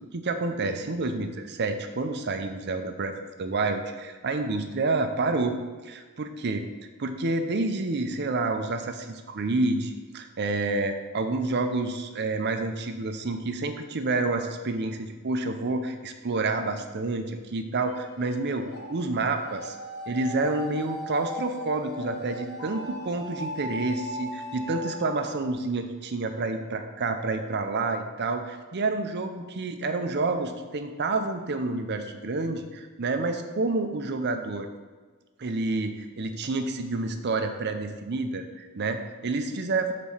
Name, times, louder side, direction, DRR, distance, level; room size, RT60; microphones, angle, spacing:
voice 1, 0.1-5.6 5.8-6.7 7.0-19.8 20.1-34.7 35.4-39.9, right 3 dB, 50° right, 7 dB, 0.6 m, -29 dB
sound 1, 17.9-25.5, equal, 50° left, 1.3 m, -38 dB
6.8 x 4.1 x 5.5 m, 1.4 s
head